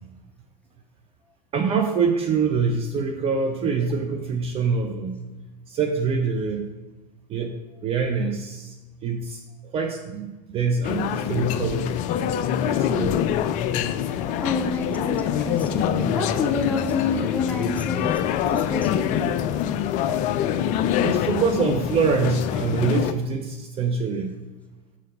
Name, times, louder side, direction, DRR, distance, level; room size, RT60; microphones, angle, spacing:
voice 1, 1.5-5.2 5.7-6.7 7.3-7.6 7.8-8.8 9.0-9.4 9.7-12.0 12.6-13.2 21.0-24.4, right 5 dB, 30° right, 4 dB, 0.6 m, -25 dB
sound 1, 10.8-23.1, left 10 dB, 40° left, 0.4 m, -25 dB
voice 2, 14.0-18.2 18.5-19.3, left 4 dB, 5° left, 2 dB, 0.9 m, -28 dB
6.3 x 3.8 x 5.4 m, 1.1 s
figure-of-eight pair, 85°, 21 cm